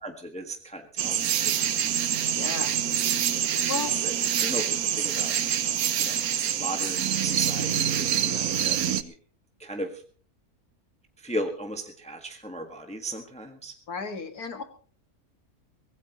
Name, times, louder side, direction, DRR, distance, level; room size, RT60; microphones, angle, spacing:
voice 1, 0.0-1.3 3.3-3.6 4.0-5.4 6.0-6.2 6.5-9.1 9.6-10.0 11.2-13.7, right 1 dB, 5° left, 4 dB, 1.5 m, -36 dB
sound 1, 1.0-9.0, right 9 dB, 75° right, 1.4 m, -26 dB
voice 2, 2.3-2.7 3.7-3.9 13.9-14.6, left 5 dB, 85° left, 8 dB, 2.4 m, -33 dB
23.5 x 17.0 x 3.0 m, 0.43 s
omnidirectional pair, 1.6 m